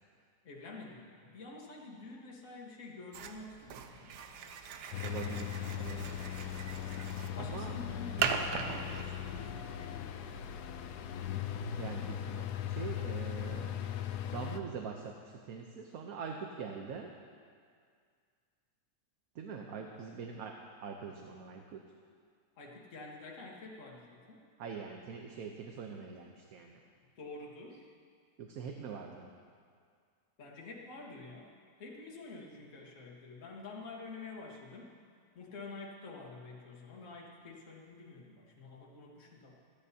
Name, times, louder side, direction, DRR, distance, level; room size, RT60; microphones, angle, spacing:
voice 1, 0.4-4.6 7.3-10.7 22.6-24.4 27.1-27.9 30.4-31.5 31.8-34.9 35.3-39.6, left 3 dB, 55° left, -3 dB, 1.7 m, -48 dB
sound 1, 3.1-9.5, right 6 dB, 90° right, 1.3 m, -39 dB
sound 2, 4.9-14.6, left 10 dB, 80° left, 1.2 m, -39 dB
voice 2, 5.0-6.3 7.4-7.7 11.8-13.9 14.3-17.1 19.3-20.5 20.8-21.8 24.6-26.8 28.4-29.3, right 6 dB, 65° right, 2 dB, 1.2 m, -43 dB
26.5 x 10.0 x 2.8 m, 2.1 s
omnidirectional pair, 1.7 m